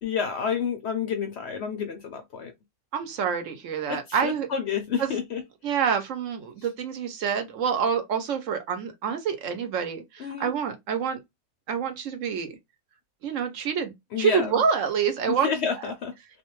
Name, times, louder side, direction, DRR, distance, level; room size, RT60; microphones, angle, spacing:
voice 1, 0.0-2.5 3.9-5.4 10.2-10.5 14.1-14.6 15.3-16.1, left 7 dB, 65° left, 0.7 m, -29 dB
voice 2, 2.9-4.5 5.0-5.1 5.6-11.2 11.7-12.5 13.2-15.5, right 7 dB, 65° right, 1.0 m, -27 dB
2.5 x 2.2 x 2.9 m
omnidirectional pair, 1.5 m